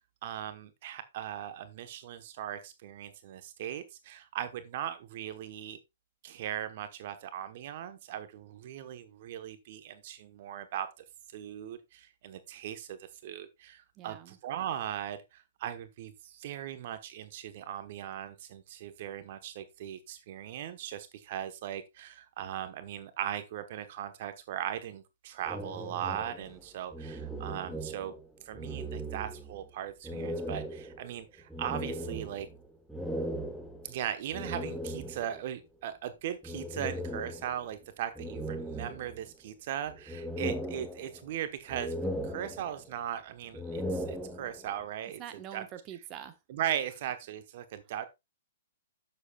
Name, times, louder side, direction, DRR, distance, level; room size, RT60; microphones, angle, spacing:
voice 1, 0.2-5.8 6.2-10.9 11.3-28.1 28.4-32.5 33.8-41.9 42.2-45.2 45.5-45.6 46.5-48.1, right 10 dB, 50° right, 1.0 m, -38 dB
voice 2, 14.0-14.4 45.2-46.4, right 10 dB, 30° right, 1.1 m, -44 dB
sound 1, 25.4-28.3 28.5-29.6 30.0-35.5 36.4-37.7 38.2-39.5 39.9-41.4 41.7-43.0 43.4-44.8, equal, ahead, 1.3 m, -38 dB
11.0 x 7.6 x 2.3 m
hypercardioid pair, 130°, 0 cm